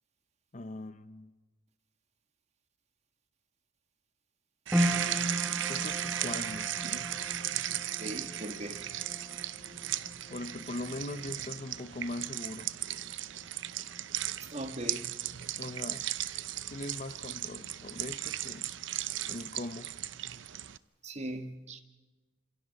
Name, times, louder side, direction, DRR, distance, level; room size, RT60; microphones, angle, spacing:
voice 1, 0.5-1.3 5.7-6.8 10.3-12.7 15.6-16.1 16.7-18.7 19.3-19.9, left 2 dB, 35° left, 0.7 m, -40 dB
sound 1, 4.7-17.1 17.4-18.3 18.8-18.9, equal, 5° right, 2.5 m, -39 dB
sound 2, 4.7-20.8, right 12 dB, 65° right, 0.6 m, -36 dB
voice 2, 8.0-8.8 14.5-15.1 21.0-21.8, right 1 dB, 35° right, 1.5 m, -39 dB
29.5 x 27.0 x 4.2 m
head